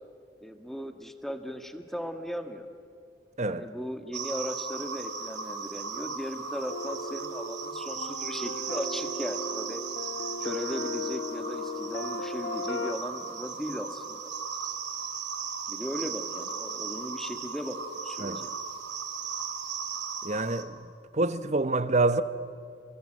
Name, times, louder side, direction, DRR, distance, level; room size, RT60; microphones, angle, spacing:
voice 1, 0.4-2.7 3.4-9.8 10.4-14.3 15.7-18.5, equal, ahead, 1.5 m, -37 dB
sound 1, 4.1-20.6, right 5 dB, 80° right, 2.5 m, -37 dB
sound 2, 6.7-12.9, left 3 dB, 80° left, 1.6 m, -36 dB
voice 2, 20.2-20.8 21.1-22.2, right 2 dB, 40° right, 0.9 m, -26 dB
30.0 x 23.0 x 7.8 m
head